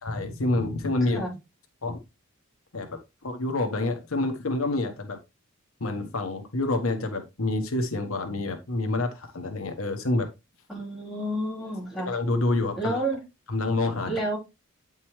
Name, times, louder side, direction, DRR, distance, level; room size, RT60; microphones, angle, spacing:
voice 1, 0.0-1.2 1.8-2.0 2.7-2.9 3.2-5.2 5.8-10.3 12.0-13.0 13.5-14.1, left 2 dB, 80° left, 6 dB, 1.3 m, -27 dB
voice 2, 10.7-12.1 12.8-13.2 14.0-14.4, right 1 dB, ahead, -5 dB, 3.5 m, -30 dB
9.0 x 5.3 x 3.1 m, 0.24 s
head